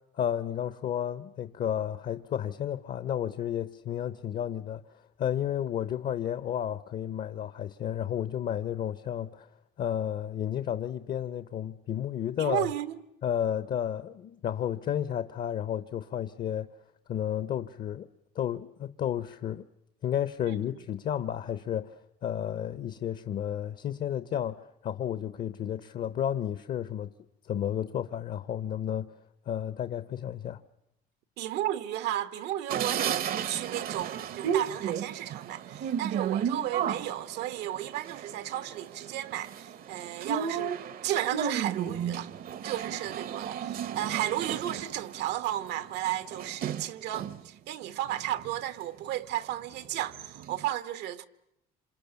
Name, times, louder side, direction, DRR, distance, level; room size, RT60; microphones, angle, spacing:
voice 1, 0.1-4.8 5.2-9.5 9.8-12.7 13.2-16.7 17.1-18.1 18.3-19.6 20.0-21.9 22.2-27.1 27.5-29.1 29.5-30.6, left 10 dB, 55° left, 0.9 m, -32 dB
voice 2, 12.4-13.0 20.5-20.6 31.4-42.3 42.6-51.3, right 12 dB, 85° right, 1.3 m, -34 dB
sound 1, 32.7-47.5 47.9-48.9 49.4-49.5 49.8-50.7, right 8 dB, 60° right, 1.0 m, -34 dB
27.5 x 27.0 x 7.0 m
cardioid pair, 110°, 17 cm